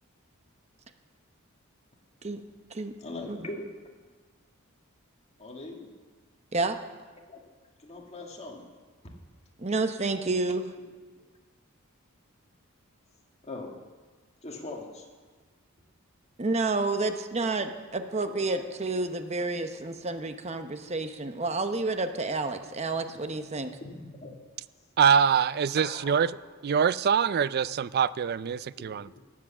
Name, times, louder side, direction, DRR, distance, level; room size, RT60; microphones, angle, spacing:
voice 1, 3.0-3.9 5.4-5.9 7.3-7.4 7.8-8.7 13.4-13.7 14.4-15.1 17.6-18.6 23.8-24.4 25.8-26.3 28.8-28.9, left 2 dB, 30° left, 0 dB, 2.0 m, -41 dB
voice 2, 9.6-10.7 16.4-23.7, right 3 dB, 30° right, 8 dB, 0.8 m, -30 dB
voice 3, 25.0-26.3 26.6-29.2, right 7 dB, 45° right, 18 dB, 0.3 m, -24 dB
18.5 x 7.6 x 7.2 m, 1.4 s
head